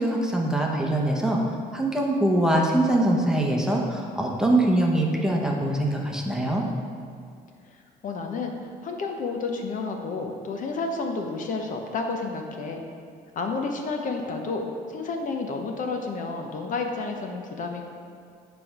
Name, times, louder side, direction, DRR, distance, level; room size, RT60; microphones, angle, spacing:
voice 1, 0.0-6.7, right 1 dB, 5° right, -1 dB, 0.9 m, -23 dB
voice 2, 8.0-8.5 8.8-12.8 13.3-17.8, left 3 dB, 50° left, 3 dB, 0.8 m, -30 dB
8.5 x 3.4 x 5.9 m, 2.3 s
cardioid pair, 110°, 17 cm